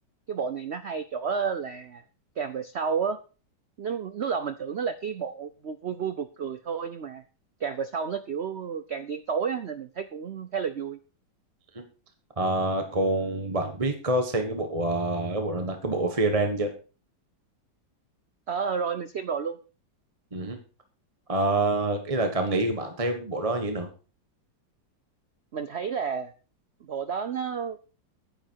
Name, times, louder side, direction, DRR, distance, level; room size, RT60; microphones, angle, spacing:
voice 1, 0.3-2.0 2.4-3.2 3.8-7.2 7.6-11.0 18.5-19.6 25.5-26.3 26.8-27.8, right 6 dB, 85° right, 11 dB, 0.5 m, -31 dB
voice 2, 12.4-16.7 20.3-20.6 21.3-23.9, right 2 dB, 20° right, 5 dB, 1.2 m, -26 dB
10.0 x 10.0 x 4.5 m, 0.35 s
omnidirectional pair, 2.0 m